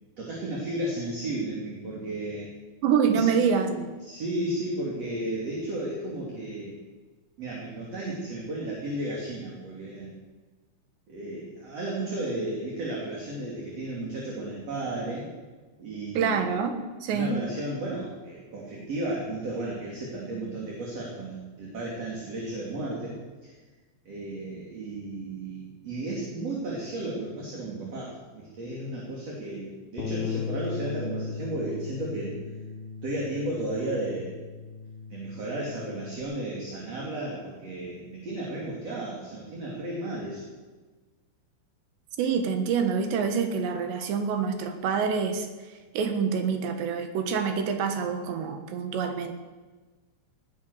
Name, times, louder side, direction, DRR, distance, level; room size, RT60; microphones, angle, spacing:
voice 1, 0.2-2.5 3.1-3.3 3.6-6.8 7.4-10.1 11.1-15.3 15.8-16.6 17.1-23.2 23.4-23.5 24.0-32.4 33.0-34.4 35.1-40.4, right 1 dB, 35° right, -3 dB, 3.3 m, -34 dB
voice 2, 2.8-3.7 16.1-17.4 42.2-45.5 45.9-49.3, right 6 dB, 70° right, 7 dB, 3.4 m, -26 dB
Bass guitar, 30.0-36.2, left 5 dB, 55° left, 3.1 m, -37 dB
19.0 x 11.0 x 6.6 m, 1.3 s
omnidirectional pair, 5.8 m